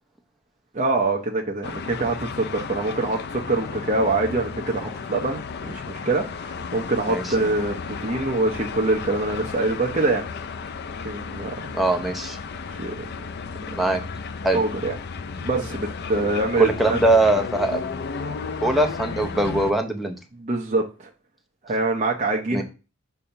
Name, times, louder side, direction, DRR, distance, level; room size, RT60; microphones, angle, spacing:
voice 1, 0.7-10.2 11.0-11.7 12.8-12.9 14.5-15.0 15.4-17.0 20.3-21.1 21.6-22.6, right 2 dB, 35° right, -1 dB, 0.8 m, -24 dB
sound 1, 1.6-19.7, left 5 dB, 50° left, 0.4 m, -34 dB
voice 2, 11.7-12.4 13.7-14.0 14.4-14.6 16.6-18.0 18.6-20.1 22.5-22.6, right 2 dB, ahead, 3 dB, 0.8 m, -22 dB
6.9 x 2.8 x 5.6 m, 0.31 s
head